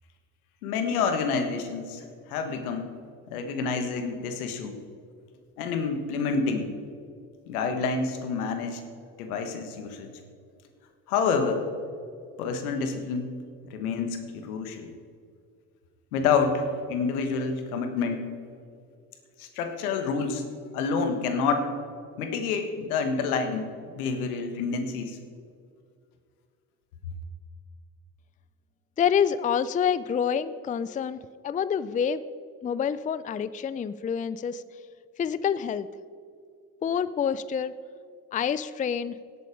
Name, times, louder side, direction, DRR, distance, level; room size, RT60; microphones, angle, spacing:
voice 1, 0.6-2.0 2.3-2.9 3.3-4.7 5.6-6.7 7.5-8.8 9.2-10.1 11.1-11.6 12.4-13.3 13.7-14.9 16.1-18.3 19.4-20.4 20.7-21.7 22.2-25.2, left 5 dB, 85° left, 6 dB, 1.5 m, -28 dB
voice 2, 29.0-32.2 32.6-34.6 35.2-35.9 36.8-37.7 38.3-39.2, left 7 dB, 20° left, 16 dB, 0.4 m, -27 dB
17.5 x 7.8 x 4.9 m, 2.3 s
hypercardioid pair, 65°, 43 cm